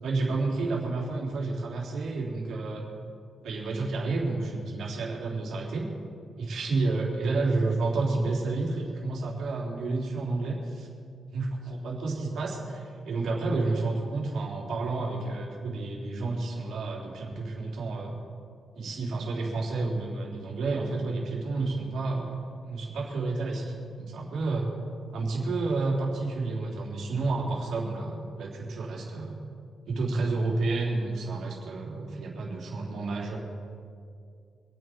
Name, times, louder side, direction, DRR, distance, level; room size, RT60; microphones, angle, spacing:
voice 1, 0.0-2.9 3.4-5.9 6.4-10.9 11.3-18.1 18.7-24.7 25.1-29.4 29.9-33.4, right 3 dB, 70° right, -2 dB, 3.9 m, -30 dB
26.0 x 9.1 x 4.7 m, 2.3 s
cardioid pair, 120°, 0 cm